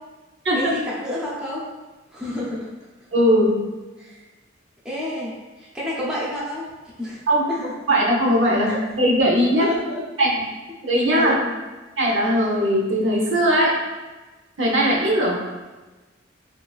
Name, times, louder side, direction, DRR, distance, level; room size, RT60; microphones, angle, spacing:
voice 1, 0.5-1.6 2.1-2.8 4.0-4.2 4.8-6.7 7.0-7.2 7.5-7.7 8.7-8.8 9.6-10.0 11.2-11.6, left 1 dB, 5° right, -7 dB, 0.4 m, -29 dB
voice 2, 3.1-3.5 7.3-7.4 7.9-9.7 10.2-10.4 10.8-11.3 12.0-13.7 14.6-15.4, equal, 70° right, -3 dB, 0.6 m, -19 dB
3.1 x 2.2 x 2.3 m, 1.2 s
head